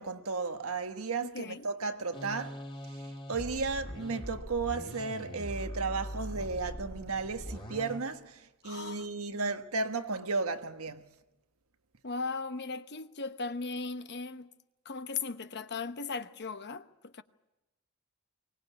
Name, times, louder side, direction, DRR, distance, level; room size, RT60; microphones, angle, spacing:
voice 1, 0.0-11.1, right 4 dB, 75° right, 1.3 m, -34 dB
voice 2, 1.2-1.7 8.6-9.1 12.0-14.5 14.8-17.2, left 4 dB, 50° left, 1.0 m, -38 dB
sound 1, 2.1-8.0, equal, 25° left, 2.5 m, -41 dB
24.0 x 19.0 x 8.3 m
head